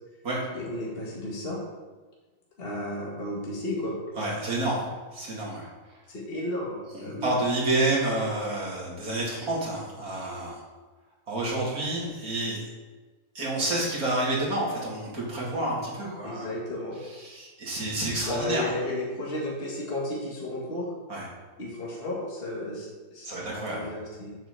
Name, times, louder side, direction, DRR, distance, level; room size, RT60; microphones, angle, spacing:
voice 1, 0.5-1.6 2.6-4.0 6.1-7.4 16.2-17.0 18.2-20.9 21.6-23.4 23.7-24.4, left 1 dB, 40° left, -4 dB, 2.2 m, -33 dB
voice 2, 4.2-5.7 6.9-10.6 11.3-12.6 13.3-16.5 17.0-18.7 21.1-21.3 23.2-23.9, right 2 dB, 85° right, -4 dB, 3.0 m, -29 dB
7.8 x 5.7 x 6.7 m, 1.3 s
omnidirectional pair, 1.5 m